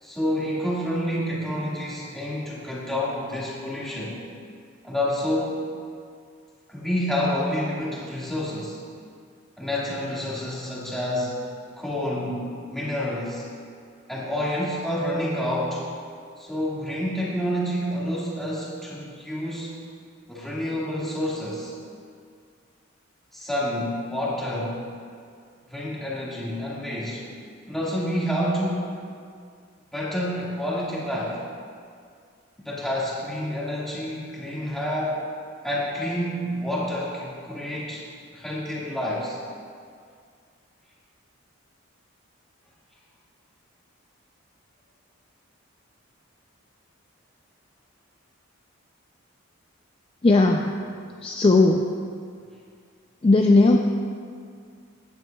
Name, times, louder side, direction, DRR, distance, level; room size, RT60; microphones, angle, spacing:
voice 1, 0.0-4.2 4.8-5.6 6.7-8.8 9.6-11.4 11.8-13.4 14.1-15.9 16.4-19.7 20.3-21.7 23.3-24.8 25.7-27.2 27.7-28.9 29.9-31.4 32.6-35.2 35.6-38.0 38.3-39.4, equal, ahead, -7 dB, 1.8 m, -28 dB
voice 2, 50.2-50.8 51.2-51.8 53.2-53.8, left 2 dB, 25° left, 2 dB, 0.3 m, -17 dB
15.5 x 9.3 x 2.3 m, 2.2 s
head